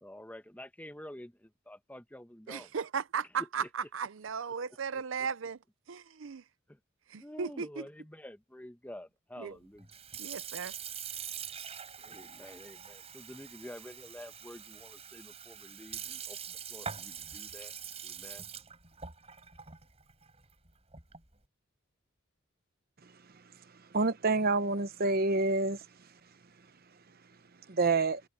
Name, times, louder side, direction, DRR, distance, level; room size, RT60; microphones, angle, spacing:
voice 1, 0.0-2.7 3.6-3.7 6.7-6.8 7.2-9.9 12.0-17.7 18.0-18.4, left 1 dB, 10° left, 1.1 m, -49 dB
voice 2, 2.5-5.6 5.9-6.4 7.1-7.9 9.4-9.6 10.2-10.7, right 6 dB, 75° right, 0.6 m, -36 dB
Sink (filling or washing) / Fill (with liquid), 9.8-21.3, right 7 dB, 30° right, 5.6 m, -44 dB
voice 3, 23.9-25.9 27.7-28.2, right 3 dB, 50° right, 0.9 m, -27 dB
head